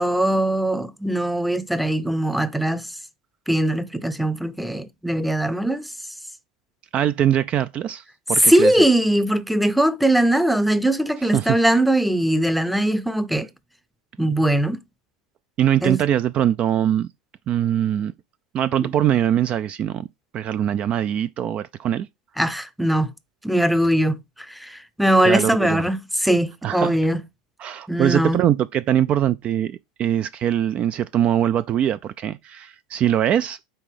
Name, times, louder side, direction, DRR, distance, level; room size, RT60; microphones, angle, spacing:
voice 1, 0.0-2.9 3.5-5.8 8.4-13.5 14.2-14.8 15.8-16.0 18.8-18.9 22.4-23.1 23.4-24.2 24.5-27.2 27.9-28.4, right 1 dB, ahead, 0.6 m, -20 dB
voice 2, 6.9-8.7 11.3-11.6 15.6-17.1 17.5-18.1 18.5-20.1 20.3-22.1 25.2-25.8 26.6-27.0 27.6-33.6, right 10 dB, 40° right, 0.3 m, -22 dB
5.6 x 4.0 x 4.9 m
hypercardioid pair, 95°, 3 cm